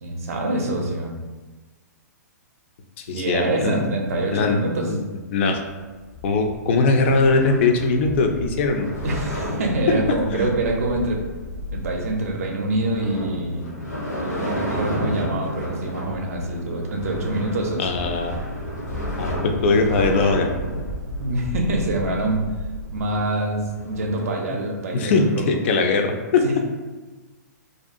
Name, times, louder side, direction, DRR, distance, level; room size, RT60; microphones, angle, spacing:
voice 1, 0.0-1.1 3.1-4.9 9.0-11.2 11.7-13.7 14.2-17.9 21.2-22.5 22.9-25.9 26.4-26.6, right 2 dB, 55° right, 2 dB, 0.5 m, -25 dB
voice 2, 3.0-3.7 4.3-4.6 4.9-5.0 5.3-5.6 6.2-8.9 9.9-10.5 17.8-18.4 19.2-20.5 24.5-24.6 24.9-26.4, left 3 dB, 45° left, 4 dB, 0.3 m, -20 dB
sound 1, 5.7-24.2, left 1 dB, 80° left, 0.7 m, -31 dB
2.6 x 2.2 x 2.5 m, 1.3 s
figure-of-eight pair, 115°, 9 cm